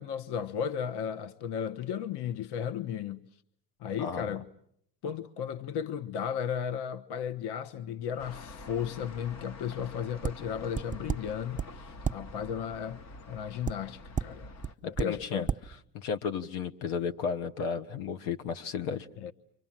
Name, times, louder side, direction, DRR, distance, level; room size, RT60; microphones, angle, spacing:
voice 1, 0.0-3.2 3.8-4.5 5.0-14.5 14.8-15.5 19.2-19.3, left 8 dB, 55° left, 1.2 m, -35 dB
voice 2, 4.0-4.4 14.8-15.5 15.9-19.1, left 6 dB, 75° left, 1.6 m, -33 dB
sound 1, 8.2-14.7, left 3 dB, 35° left, 1.2 m, -47 dB
sound 2, 10.2-10.3 10.7-11.2 11.5-11.7 12.0-12.2 13.6-13.7 14.2-14.3 14.6-14.7 15.0-15.1 15.5-15.6, right 7 dB, 15° right, 1.1 m, -30 dB
30.0 x 25.0 x 7.5 m
hypercardioid pair, 75°, 48 cm